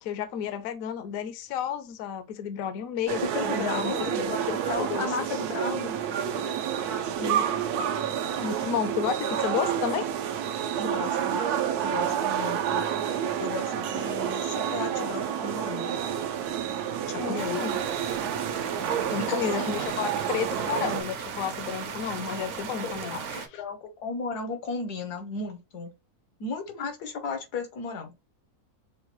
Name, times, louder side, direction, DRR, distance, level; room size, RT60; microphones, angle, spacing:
voice 1, 0.0-3.9 4.3-5.1 7.2-7.5 8.4-10.1 17.2-17.8 19.1-23.5, left 8 dB, 70° left, 1.0 m, -32 dB
sound 1, 3.1-21.0, right 9 dB, 90° right, 1.1 m, -29 dB
voice 2, 3.3-4.3 4.7-6.0 10.8-11.4 11.8-12.9 13.4-16.0 17.1-17.6 19.1-19.9 22.8-23.2 23.5-25.9 26.4-28.1, left 4 dB, 85° left, 1.5 m, -35 dB
sound 2, 17.4-23.5, right 6 dB, 60° right, 0.9 m, -36 dB
6.2 x 2.2 x 3.0 m
omnidirectional pair, 1.6 m